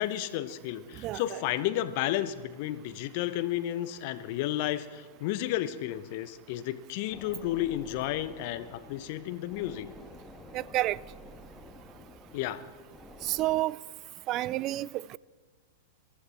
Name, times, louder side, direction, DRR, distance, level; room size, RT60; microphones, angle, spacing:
voice 1, 0.0-9.9 12.3-12.6, left 13 dB, 50° left, 0.9 m, -32 dB
sound 1, 7.1-13.6, left 1 dB, 10° left, 1.5 m, -50 dB
voice 2, 10.5-11.0 13.2-13.8 14.3-15.2, right 16 dB, 35° right, 0.4 m, -29 dB
23.0 x 14.0 x 4.3 m
figure-of-eight pair, 100°, 0 cm